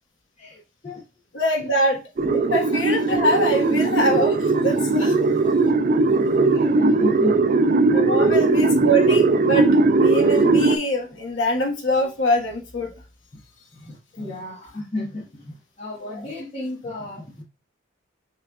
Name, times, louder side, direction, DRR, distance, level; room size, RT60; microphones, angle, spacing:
voice 1, 0.4-1.0 1.6-1.7 2.2-2.6 3.6-3.7 5.1-5.2 6.1-7.6 8.2-8.4 8.8-8.9 13.7-17.4, left 2 dB, 30° left, -5 dB, 1.2 m, -33 dB
voice 2, 1.3-2.0 2.5-5.2 7.9-9.7 9.9-12.9, equal, 70° left, 2 dB, 1.2 m, -23 dB
sound 1, 2.2-10.8, right 3 dB, 40° right, 0.4 m, -19 dB
6.1 x 3.2 x 2.3 m, 0.30 s
head